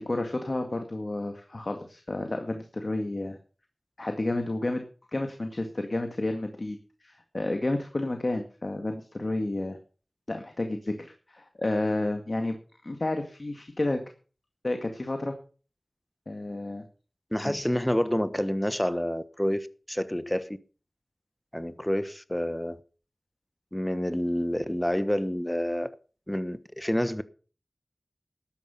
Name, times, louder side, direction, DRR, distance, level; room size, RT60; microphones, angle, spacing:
voice 1, 0.0-3.4 4.0-4.8 5.1-9.8 10.3-12.6 12.8-14.0 14.6-15.3 16.3-16.8 17.4-17.5, left 2 dB, 55° left, 2.0 m, -31 dB
voice 2, 17.3-20.6 21.5-22.8 23.7-25.9 26.3-27.2, equal, 10° left, 1.2 m, -28 dB
12.5 x 10.0 x 5.7 m
wide cardioid pair, 45°, 0 cm